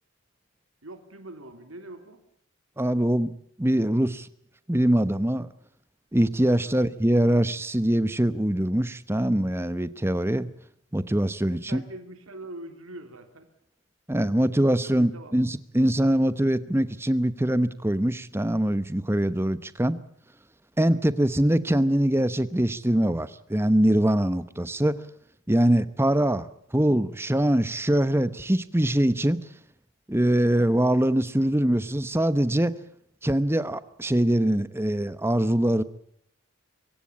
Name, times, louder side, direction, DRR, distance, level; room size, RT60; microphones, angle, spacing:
voice 1, 0.8-2.2 6.5-6.8 11.5-13.5 14.7-15.3, right 1 dB, 85° right, 7 dB, 3.2 m, -43 dB
voice 2, 2.8-3.3 3.6-4.3 4.7-5.5 6.1-10.5 10.9-11.8 14.1-20.0 20.8-25.0 25.5-26.5 26.7-29.5 30.1-32.8 33.2-35.8, right 1 dB, 10° right, 14 dB, 0.9 m, -23 dB
25.0 x 16.5 x 8.5 m, 0.70 s
head